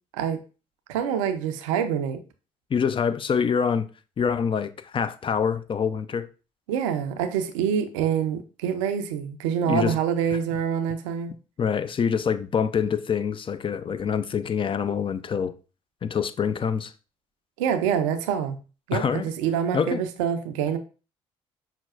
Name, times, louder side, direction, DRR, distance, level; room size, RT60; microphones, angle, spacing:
voice 1, 0.9-2.2 6.7-11.3 17.6-18.6 18.9-20.8, right 8 dB, 80° right, 0.5 m, -26 dB
voice 2, 2.7-3.9 4.2-6.3 9.7-10.0 11.6-15.5 16.0-16.9 18.9-19.3 19.7-20.0, left 7 dB, 35° left, 0.4 m, -25 dB
5.7 x 2.2 x 2.4 m
hypercardioid pair, 50°, 16 cm